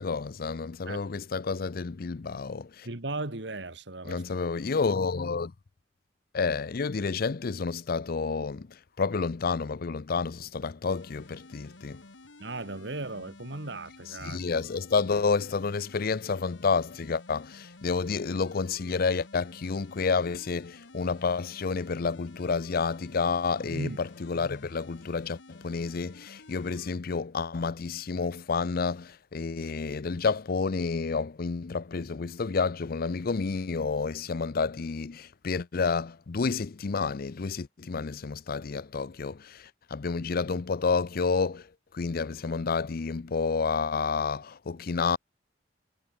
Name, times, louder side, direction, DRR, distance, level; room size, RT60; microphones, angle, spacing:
voice 1, 0.0-2.9 4.1-5.5 6.3-12.0 14.2-41.7 41.9-45.2, left 4 dB, 55° left, 0.6 m, -30 dB
voice 2, 2.8-4.2 12.4-14.4 23.6-24.0, right 2 dB, 70° right, 2.2 m, -36 dB
sound 1, 10.9-26.9, left 2 dB, 85° left, 2.0 m, -52 dB
head